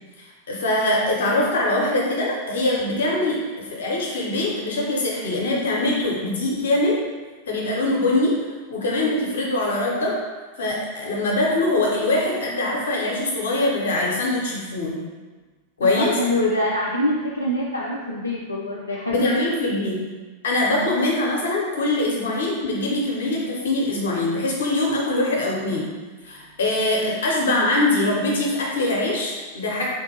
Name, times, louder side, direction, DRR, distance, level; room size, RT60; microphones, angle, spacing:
voice 1, 0.2-7.0 7.5-8.4 8.7-10.2 10.6-15.0 15.8-16.1 19.1-20.0 20.4-25.9 26.2-29.8, left 2 dB, 65° left, -3 dB, 0.8 m, -23 dB
voice 2, 15.8-19.3, left 1 dB, 90° left, -5 dB, 0.3 m, -24 dB
3.8 x 2.5 x 2.8 m, 1.3 s
figure-of-eight pair, 90°, 0 cm